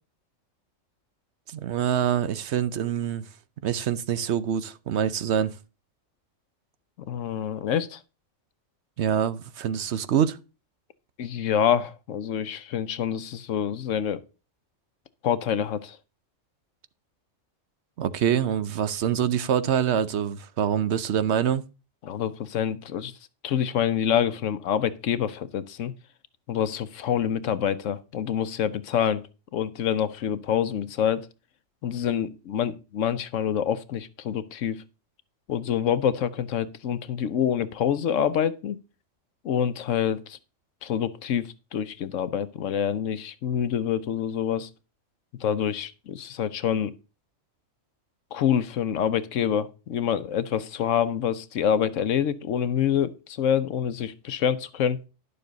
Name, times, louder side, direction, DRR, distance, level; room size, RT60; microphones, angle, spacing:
voice 1, 1.5-3.2 3.6-5.5 9.0-10.4 18.0-21.6, right 9 dB, 65° right, 1.0 m, -25 dB
voice 2, 7.1-8.0 11.2-14.2 15.2-16.0 22.0-23.1 23.4-25.9 26.5-29.2 29.5-31.3 31.8-34.8 35.5-38.8 39.4-40.4 40.8-44.7 45.4-46.9 48.3-55.0, left 9 dB, 80° left, 1.1 m, -26 dB
11.0 x 6.9 x 3.9 m
omnidirectional pair, 1.3 m